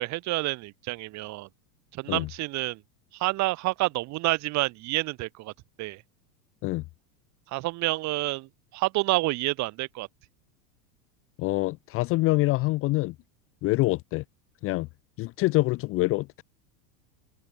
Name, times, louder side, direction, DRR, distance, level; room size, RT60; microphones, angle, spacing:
voice 1, 0.0-1.5 1.9-2.8 3.1-5.5 5.8-6.0 7.5-10.1, right 20 dB, 35° right, 1.9 m, -28 dB
voice 2, 11.4-13.1 13.6-14.2 14.6-14.9 15.2-16.4, left 20 dB, 30° left, 0.7 m, -25 dB
supercardioid pair, 160°, 47 cm